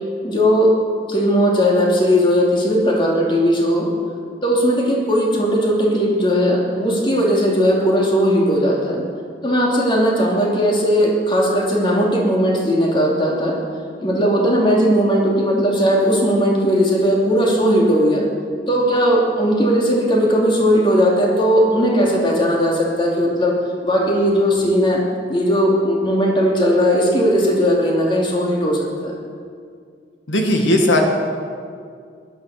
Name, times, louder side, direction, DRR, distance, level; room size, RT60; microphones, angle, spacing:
voice 1, 0.2-0.7 1.1-3.9 4.4-9.0 9.4-13.6 14.0-18.2 18.7-23.6 23.8-25.0 25.3-29.1, equal, 25° left, -2 dB, 2.8 m, -17 dB
voice 2, 30.3-31.0, left 1 dB, 80° left, 2 dB, 1.9 m, -16 dB
16.5 x 12.0 x 6.6 m, 2.2 s
head